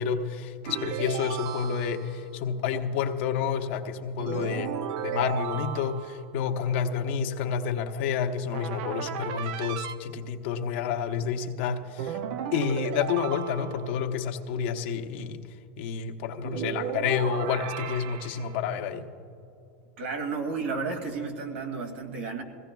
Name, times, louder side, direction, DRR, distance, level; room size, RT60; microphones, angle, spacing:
voice 1, 0.0-4.8 5.0-12.2 12.5-15.4 15.8-19.1, left 7 dB, 65° left, 5 dB, 0.9 m, -29 dB
sound 1, 0.6-2.2 4.2-6.3 8.5-10.0 12.0-14.1 16.4-18.6, right 9 dB, 60° right, 0.5 m, -35 dB
voice 2, 20.0-22.4, right 4 dB, 85° right, 4 dB, 2.1 m, -32 dB
21.5 x 16.5 x 2.3 m, 2.5 s
supercardioid pair, 155°, 7 cm